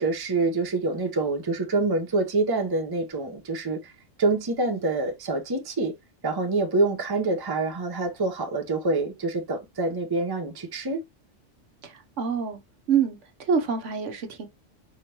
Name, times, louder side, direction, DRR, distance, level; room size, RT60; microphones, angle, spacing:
voice 1, 0.0-3.9 4.2-5.9 6.2-11.0, right 3 dB, 20° right, 0.7 m, -26 dB
voice 2, 11.8-12.6 12.9-14.5, right 6 dB, 75° right, 1.2 m, -26 dB
4.9 x 3.6 x 2.8 m
omnidirectional pair, 1.3 m